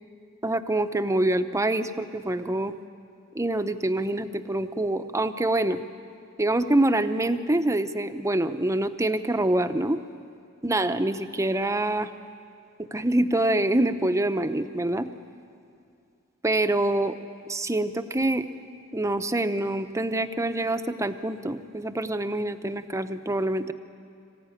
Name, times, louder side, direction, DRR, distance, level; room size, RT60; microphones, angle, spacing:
voice 1, 0.4-2.7 3.3-5.8 6.4-10.0 10.6-12.1 12.8-15.1 16.4-17.2 17.5-18.5 18.9-23.7, right 1 dB, 15° right, 10 dB, 0.7 m, -25 dB
25.0 x 15.5 x 9.9 m, 2.4 s
head